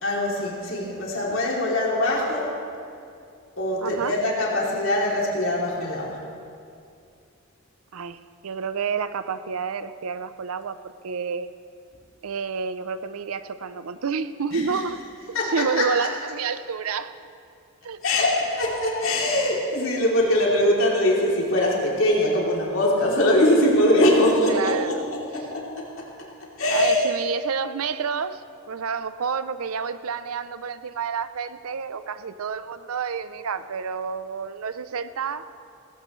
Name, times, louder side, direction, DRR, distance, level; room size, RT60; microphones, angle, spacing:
voice 1, 0.0-2.6 3.6-6.2 14.5-14.8 15.3-15.8 18.0-25.9 26.6-27.1, left 1 dB, 70° left, -4 dB, 3.2 m, -22 dB
voice 2, 3.8-4.2 7.9-10.8 11.0-11.5 12.2-15.0 15.5-17.1 17.8-18.0 24.5-25.1 26.7-28.4 28.7-35.4, right 5 dB, 85° right, 13 dB, 0.6 m, -29 dB
18.0 x 16.0 x 3.2 m, 2.4 s
head